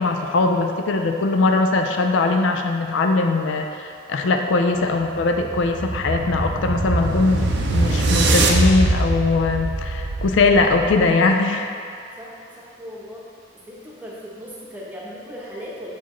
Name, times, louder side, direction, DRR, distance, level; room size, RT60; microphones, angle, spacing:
voice 1, 0.0-11.8, left 3 dB, 75° left, 4 dB, 0.4 m, -20 dB
sound 1, 5.0-11.2, right 2 dB, 60° right, 0.6 m, -23 dB
voice 2, 12.2-13.2 13.7-15.9, equal, 10° right, -6 dB, 0.8 m, -37 dB
7.0 x 4.4 x 3.0 m, 2.3 s
head